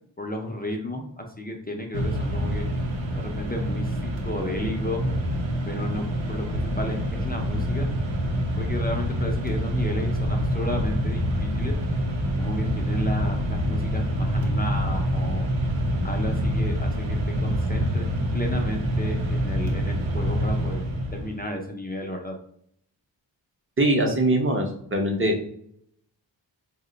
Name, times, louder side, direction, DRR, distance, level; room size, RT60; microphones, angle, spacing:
voice 1, 0.2-2.6 3.1-5.1 5.7-7.9 8.6-11.8 12.4-15.4 16.0-18.1 18.3-20.8 21.1-22.3, left 1 dB, 20° left, 2 dB, 0.4 m, -33 dB
Mechanisms, 1.9-21.4, equal, 75° right, 0.7 m, -26 dB
voice 2, 23.8-25.3, right 1 dB, 25° right, 2 dB, 0.6 m, -22 dB
2.8 x 2.1 x 3.8 m, 0.68 s
wide cardioid pair, 85°, 46 cm